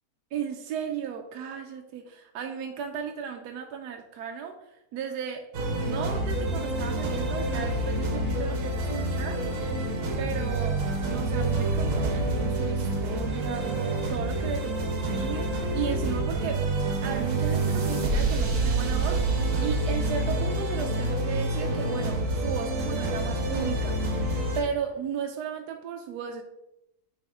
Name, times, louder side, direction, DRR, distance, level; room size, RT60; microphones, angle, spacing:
voice 1, 0.3-5.5 5.8-9.5 10.2-16.7 17.0-19.3 19.6-24.0 24.5-26.4, right 7 dB, 80° right, 3 dB, 1.2 m, -35 dB
sound 1, 5.5-24.6, right 2 dB, 55° right, 1.3 m, -27 dB
9.6 x 3.3 x 3.5 m, 0.85 s
omnidirectional pair, 1.7 m